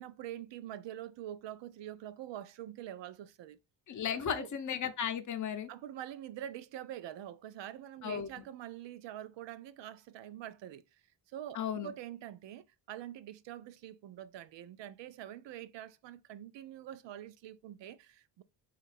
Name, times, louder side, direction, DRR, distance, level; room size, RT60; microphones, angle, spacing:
voice 1, 0.0-3.6 4.2-4.5 5.7-11.0 11.3-18.4, right 11 dB, 65° right, 0.5 m, -45 dB
voice 2, 3.9-5.7 8.0-8.3 11.5-11.9, left 8 dB, 40° left, 0.7 m, -35 dB
4.7 x 2.5 x 4.1 m
wide cardioid pair, 150°, 47 cm